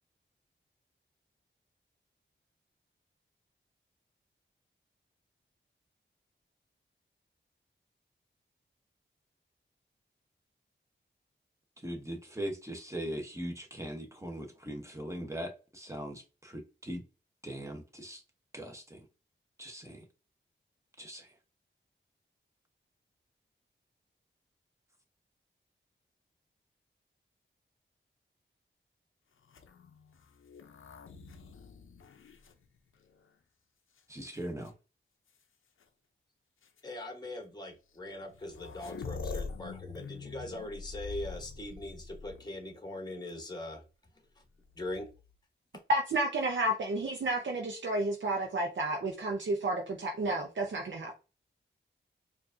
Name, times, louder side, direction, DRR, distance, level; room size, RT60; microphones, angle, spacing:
voice 1, 11.8-17.0 17.4-18.2 18.5-19.0 19.6-20.0 21.0-21.2 34.1-34.7, equal, 15° right, 1.0 m, -40 dB
sound 1, 29.4-33.3 34.0-34.7 35.8-35.9 36.6-36.8 37.9-38.0 38.2-42.7 44.6-45.3, left 4 dB, 85° left, 0.5 m, -45 dB
voice 2, 36.8-43.8 44.8-45.1, left 1 dB, 20° left, 0.9 m, -41 dB
voice 3, 45.9-51.2, right 1 dB, 70° right, 0.7 m, -31 dB
4.6 x 2.5 x 2.5 m
wide cardioid pair, 70°, 20 cm